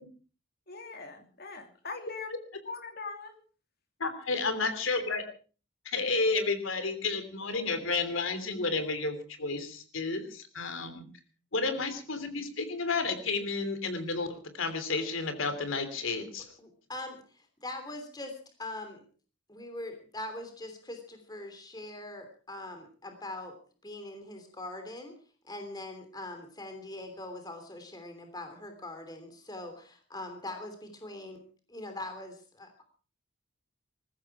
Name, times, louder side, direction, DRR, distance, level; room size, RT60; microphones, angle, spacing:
voice 1, 0.7-2.3 2.6-3.3, left 4 dB, 50° left, 5 dB, 3.1 m, -41 dB
voice 2, 4.0-5.2 5.8-11.0 11.5-16.5, left 3 dB, 75° left, 10 dB, 3.2 m, -31 dB
voice 3, 16.6-19.0 19.5-23.5 23.8-25.1 25.4-31.4 31.7-32.7, left 1 dB, 20° left, 6 dB, 3.1 m, -42 dB
20.0 x 15.0 x 4.8 m, 0.40 s
head